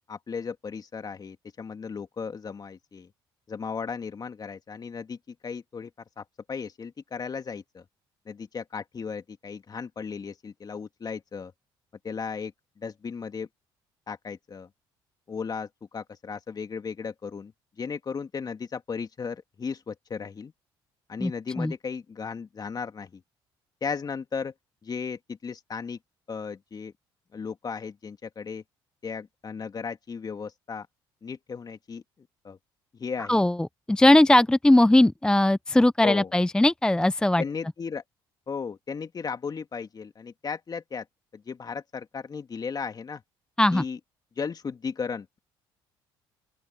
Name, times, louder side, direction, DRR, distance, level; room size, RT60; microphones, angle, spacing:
voice 1, 0.1-3.1 3.5-5.9 6.2-7.8 8.3-11.5 12.0-13.5 14.1-14.7 15.3-17.5 17.8-20.5 21.1-23.2 23.8-24.5 24.8-26.0 26.3-26.9 27.3-28.6 29.0-30.9 31.2-32.6 33.0-33.4 36.0-36.3 37.4-38.0 38.5-41.0 41.3-43.2 43.7-44.0 44.4-45.4, left 5 dB, 40° left, 2.5 m, -35 dB
voice 2, 33.9-37.4 43.6-43.8, left 1 dB, 5° left, 0.5 m, -19 dB
open air
supercardioid pair, 70°, 11 cm